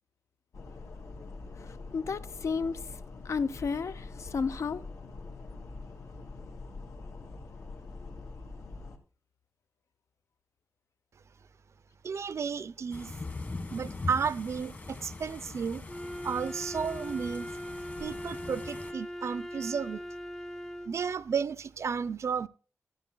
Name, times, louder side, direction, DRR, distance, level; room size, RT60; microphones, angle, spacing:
sound 1, 0.5-9.0, left 3 dB, 80° left, 2.8 m, -44 dB
voice 1, 1.6-2.9 3.2-4.8, left 5 dB, 60° left, 0.6 m, -32 dB
voice 2, 12.0-13.1 13.7-15.8 16.2-17.5 18.0-20.0 20.9-22.5, right 6 dB, 60° right, 0.6 m, -33 dB
sound 2, 12.9-18.9, left 3 dB, 35° left, 1.6 m, -41 dB
Wind instrument woodwind instrument, 15.9-21.0, equal, 5° left, 0.6 m, -40 dB
14.5 x 9.9 x 2.4 m
wide cardioid pair, 160°, 6 cm